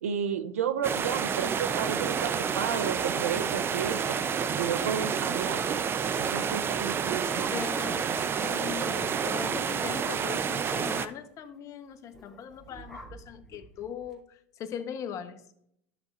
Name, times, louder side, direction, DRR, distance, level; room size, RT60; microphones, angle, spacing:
voice 1, 0.0-4.1 4.6-5.6 6.2-7.5, right 7 dB, 90° right, 11 dB, 0.7 m, -32 dB
sound 1, 0.8-11.1, right 7 dB, 30° right, 0.6 m, -29 dB
sound 2, 7.1-8.0 8.4-8.5 8.7-9.0 9.4-9.6 9.9-10.0 10.6-11.2 12.1-14.1, equal, ahead, 2.7 m, -48 dB
voice 2, 7.5-8.1 8.4-15.4, left 8 dB, 45° left, 9 dB, 1.0 m, -40 dB
13.0 x 6.6 x 2.5 m, 0.72 s
hypercardioid pair, 95°, 8 cm